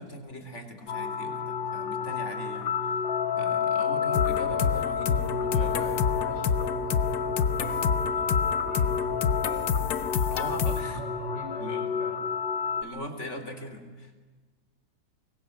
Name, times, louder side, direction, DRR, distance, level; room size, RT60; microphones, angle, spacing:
voice 1, 0.0-3.0 3.4-5.7 10.3-11.0 11.6-11.9 12.8-14.2, left 1 dB, 40° left, 6 dB, 4.2 m, -40 dB
sound 1, 0.9-12.8, left 6 dB, 90° left, 2.4 m, -30 dB
sound 2, 4.1-10.8, left 6 dB, 60° left, 1.5 m, -28 dB
voice 2, 5.1-9.4 10.5-12.2, right 2 dB, 80° right, 3 dB, 6.1 m, -43 dB
25.5 x 22.5 x 9.5 m, 1.3 s
omnidirectional pair, 1.9 m